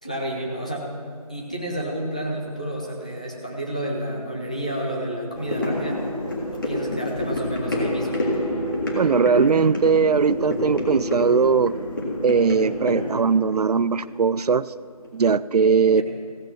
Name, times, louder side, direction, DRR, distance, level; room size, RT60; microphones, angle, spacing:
voice 1, 0.0-0.9 1.3-6.0 6.5-8.2 15.9-16.0, right 1 dB, 10° left, -2 dB, 0.6 m, -30 dB
sound 1, 5.3-14.7 15.0-15.1, left 1 dB, 35° left, 1.9 m, -28 dB
voice 2, 8.9-11.8 12.2-14.7 15.1-16.0, right 5 dB, 80° right, 18 dB, 0.4 m, -19 dB
15.5 x 7.8 x 5.9 m, 2.3 s
figure-of-eight pair, 170°, 20 cm